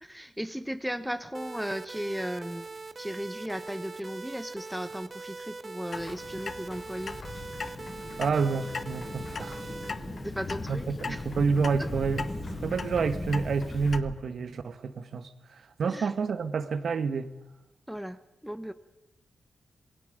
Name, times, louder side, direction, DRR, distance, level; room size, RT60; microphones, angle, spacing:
voice 1, 0.0-2.7 3.0-7.2 10.2-11.3 15.9-16.1 17.9-18.7, equal, ahead, 1.0 m, -36 dB
sound 1, 1.3-9.9, right 3 dB, 30° right, 1.4 m, -42 dB
Clock, 5.9-14.0, left 4 dB, 40° left, 1.1 m, -41 dB
sound 2, 6.8-14.1, left 1 dB, 20° left, 6.4 m, -39 dB
voice 2, 8.2-9.7 10.7-12.3 12.6-15.3 15.8-17.3, right 5 dB, 60° right, 1.5 m, -28 dB
27.0 x 21.5 x 5.1 m
wide cardioid pair, 135°, 0 cm